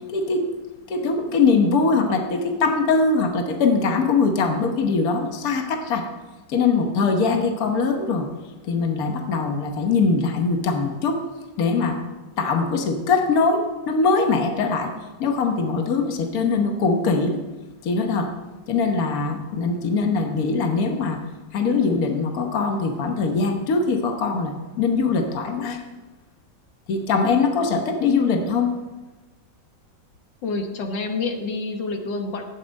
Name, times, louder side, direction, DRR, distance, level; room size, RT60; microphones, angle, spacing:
voice 1, 0.1-0.5 0.9-6.1 6.5-8.3 8.7-11.2 11.6-12.0 12.4-14.9 15.2-17.4 17.8-18.3 18.7-21.2 21.5-25.8 26.9-28.7, left 4 dB, 55° left, 4 dB, 1.5 m, -22 dB
voice 2, 30.4-32.4, left 3 dB, 75° left, 4 dB, 1.8 m, -28 dB
11.5 x 8.7 x 5.2 m, 1.2 s
omnidirectional pair, 2.0 m